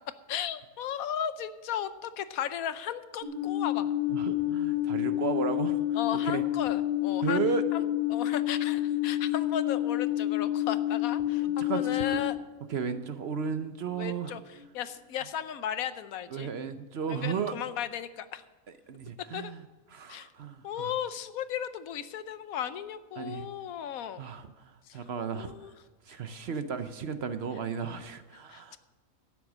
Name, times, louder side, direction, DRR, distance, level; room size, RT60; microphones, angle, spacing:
voice 1, 0.3-3.9 5.9-7.4 7.7-12.4 14.0-14.4 14.7-16.5 17.1-18.4 19.3-19.5 20.1-20.3 20.6-24.2 24.9-25.0 25.3-25.7 28.5-28.8, left 9 dB, 85° left, 13 dB, 1.1 m, -35 dB
Alarm, 3.2-12.1, left 14 dB, 35° right, 2.5 m, -29 dB
voice 2, 4.1-6.4 7.2-7.6 11.4-12.2 12.7-14.4 16.3-17.5 18.9-19.6 19.9-20.9 23.2-23.5 24.2-25.5 26.1-28.8, right 6 dB, 55° right, 10 dB, 0.9 m, -34 dB
12.0 x 9.6 x 6.2 m, 1.2 s
omnidirectional pair, 1.5 m